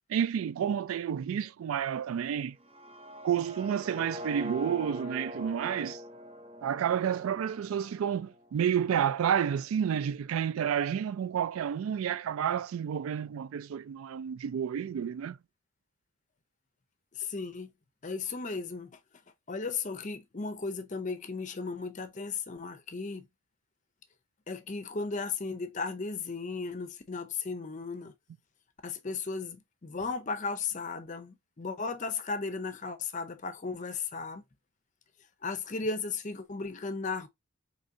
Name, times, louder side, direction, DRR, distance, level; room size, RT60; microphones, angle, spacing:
voice 1, 0.1-2.6 3.2-6.0 6.6-15.4, right 8 dB, 90° right, 0.3 m, -30 dB
sound 1, 2.6-8.5, equal, 25° right, 0.5 m, -43 dB
voice 2, 17.1-17.7 18.0-19.0 19.5-23.3 24.5-28.1 28.8-34.4 35.4-37.3, left 4 dB, 35° left, 0.6 m, -35 dB
4.9 x 3.1 x 2.6 m
head